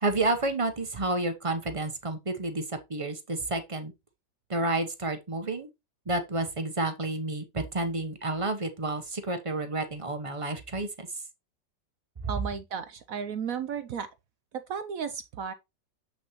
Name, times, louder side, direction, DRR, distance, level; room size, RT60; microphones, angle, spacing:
voice 1, 0.0-3.9 4.5-5.7 6.1-11.1, right 2 dB, 30° right, 0.6 m, -30 dB
voice 2, 12.3-14.1 14.5-15.5, right 7 dB, 70° right, 0.8 m, -34 dB
7.4 x 6.1 x 3.0 m
omnidirectional pair, 2.0 m